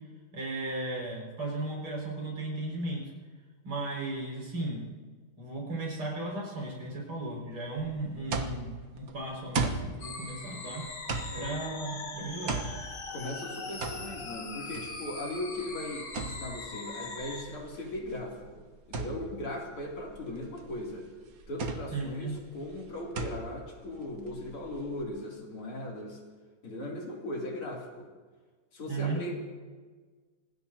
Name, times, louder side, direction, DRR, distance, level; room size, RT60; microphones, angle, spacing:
voice 1, 0.3-3.0 3.6-4.9 5.4-10.8 11.4-12.6 21.9-22.3 28.9-29.2, right 2 dB, 80° right, -3 dB, 6.5 m, -35 dB
sound 1, 7.8-25.0, right 4 dB, 50° right, 1.4 m, -38 dB
sound 2, 10.0-17.4, left 3 dB, 55° left, 2.6 m, -41 dB
voice 2, 11.2-11.5 13.1-18.6 18.9-21.1 21.5-26.2 26.6-28.1 28.7-29.4, left 1 dB, 80° left, -2 dB, 3.8 m, -38 dB
26.0 x 20.0 x 2.8 m, 1.4 s
omnidirectional pair, 2.3 m